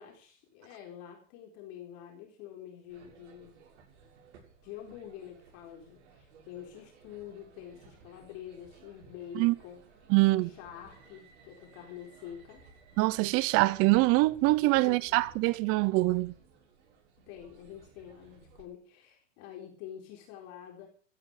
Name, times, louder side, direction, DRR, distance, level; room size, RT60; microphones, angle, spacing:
voice 1, 0.0-3.6 4.6-9.8 10.2-12.6 14.7-15.2 17.3-20.9, left 10 dB, 45° left, 4.3 m, -47 dB
sound 1, 2.9-18.6, right 4 dB, 65° right, 6.9 m, -58 dB
voice 2, 10.1-10.5 13.0-16.3, right 21 dB, 35° right, 0.8 m, -24 dB
14.0 x 11.0 x 6.6 m
hypercardioid pair, 135°, 38 cm